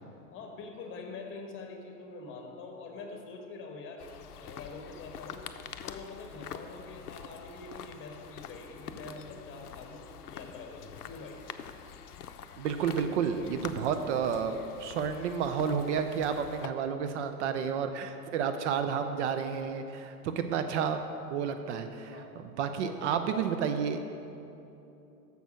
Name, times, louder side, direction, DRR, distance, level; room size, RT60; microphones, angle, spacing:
voice 1, 0.3-4.0 4.3-5.4 5.8-10.0 10.3-11.4 22.1-22.3 22.8-23.5, left 3 dB, 25° left, 3 dB, 1.2 m, -45 dB
sound 1, 4.0-16.7, left 8 dB, 85° left, 0.6 m, -46 dB
voice 2, 12.6-14.5 14.8-21.0 21.3-24.0, right 7 dB, 50° right, 8 dB, 0.6 m, -31 dB
7.0 x 6.0 x 6.2 m, 2.8 s
hypercardioid pair, 100°, 45 cm